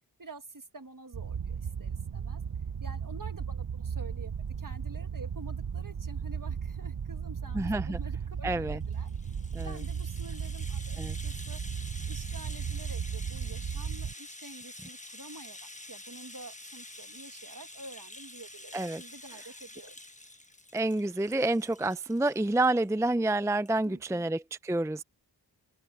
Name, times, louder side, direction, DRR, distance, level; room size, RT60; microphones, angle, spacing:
voice 1, 0.2-2.4 2.8-9.1 9.6-11.6 12.1-20.0 23.8-24.3, right 3 dB, 55° right, 1.7 m, -48 dB
sound 1, 1.1-14.1, right 7 dB, 70° right, 0.9 m, -35 dB
voice 2, 7.5-8.0 8.4-8.8 9.5-9.7 11.0-11.2 18.7-19.0 20.7-25.0, right 2 dB, 10° right, 0.5 m, -28 dB
Rattle (instrument), 8.8-22.9 23.3-23.4 23.6-23.8, left 2 dB, 20° left, 1.2 m, -48 dB
open air
wide cardioid pair, 50°, 39 cm